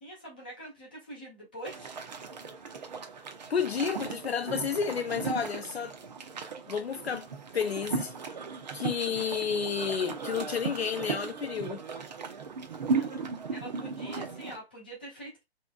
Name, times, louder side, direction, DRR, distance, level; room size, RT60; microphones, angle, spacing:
voice 1, 0.0-1.9 12.9-13.2 13.5-15.4, right 1 dB, 10° left, 0.4 m, -44 dB
sound 1, 1.7-14.6, right 5 dB, 40° right, 0.6 m, -36 dB
voice 2, 3.5-5.9 6.7-7.3 7.5-8.1 8.7-11.8, left 7 dB, 70° left, 0.5 m, -31 dB
3.8 x 2.8 x 2.3 m
figure-of-eight pair, 135°, 33 cm